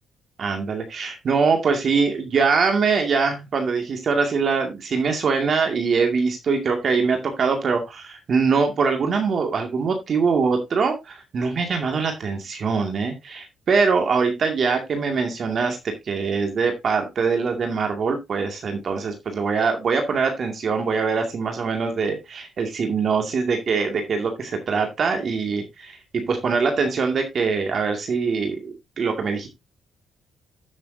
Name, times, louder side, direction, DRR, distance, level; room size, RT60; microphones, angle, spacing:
voice 1, 0.4-29.5, right 5 dB, 50° right, 4 dB, 2.3 m, -23 dB
13.5 x 6.8 x 2.7 m, 0.21 s
cardioid pair, 90°, 0 cm